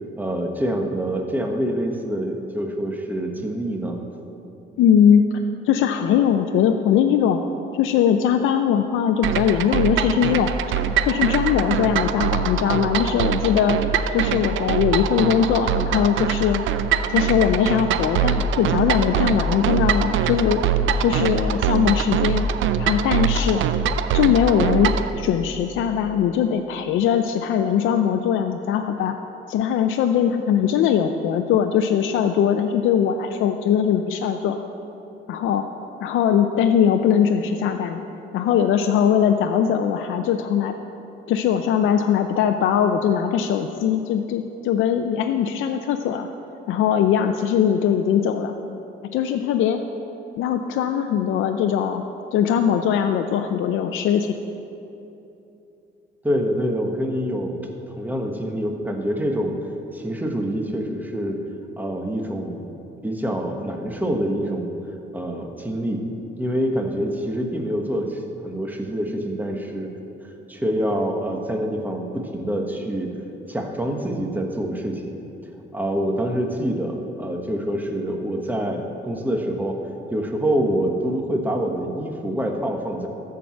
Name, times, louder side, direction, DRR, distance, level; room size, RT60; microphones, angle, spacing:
voice 1, 0.2-4.0 56.2-57.6 57.9-59.5 59.9-61.4 61.8-62.7 63.0-64.7 65.1-66.0 66.4-69.9 70.5-73.1 73.5-75.1 75.7-79.8 80.1-83.1, equal, 10° right, 2 dB, 1.2 m, -26 dB
voice 2, 4.8-5.2 5.6-7.4 7.7-10.5 11.0-13.8 14.1-16.6 17.1-20.6 21.0-22.5 22.8-23.6 24.1-29.2 29.5-34.6 35.3-35.6 36.0-38.0 38.3-40.7 41.3-46.3 46.7-48.5 49.1-49.8 50.4-52.0 52.3-54.4, left 8 dB, 85° left, 6 dB, 0.5 m, -20 dB
sound 1, 9.2-25.1, right 7 dB, 75° right, 0.5 m, -23 dB
13.5 x 4.7 x 7.1 m, 2.9 s
cardioid pair, 90°, 20 cm